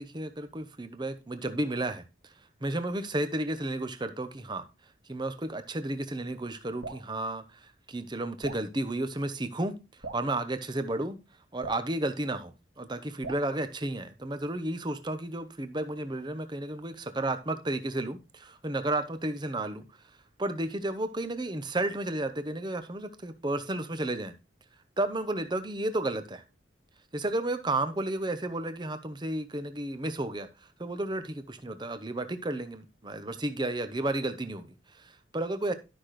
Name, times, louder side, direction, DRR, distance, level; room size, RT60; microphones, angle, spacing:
voice 1, 0.0-2.3 2.6-4.7 5.1-9.8 10.1-11.2 11.5-19.9 20.4-24.3 25.0-26.4 27.1-30.5 30.8-35.7, right 1 dB, 25° right, 0.8 m, -32 dB
Drip, 6.8-7.1 8.4-8.7 10.0-10.3 11.6-11.9 13.2-13.5, right 3 dB, 70° right, 1.9 m, -40 dB
12.0 x 5.9 x 3.2 m
head